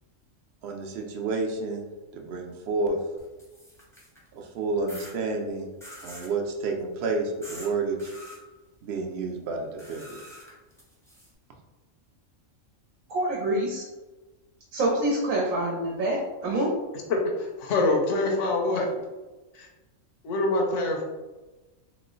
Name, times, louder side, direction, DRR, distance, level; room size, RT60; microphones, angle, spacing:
voice 1, 0.6-1.8 2.1-3.0 4.3-5.7 6.0-8.1 8.8-10.2, right 3 dB, 65° right, 2 dB, 0.7 m, -30 dB
sound 1, 3.2-4.3 4.9-5.1 5.8-6.3 7.4-7.7 8.0-8.4 9.8-11.3, equal, 5° left, 0.5 m, -45 dB
voice 2, 13.1-13.8 14.7-16.7, right 1 dB, 90° right, -3 dB, 1.1 m, -26 dB
voice 3, 17.1-18.9 19.6-19.7 20.2-21.0, left 2 dB, 70° left, 1 dB, 1.0 m, -25 dB
3.0 x 2.0 x 3.7 m, 1.1 s
omnidirectional pair, 1.4 m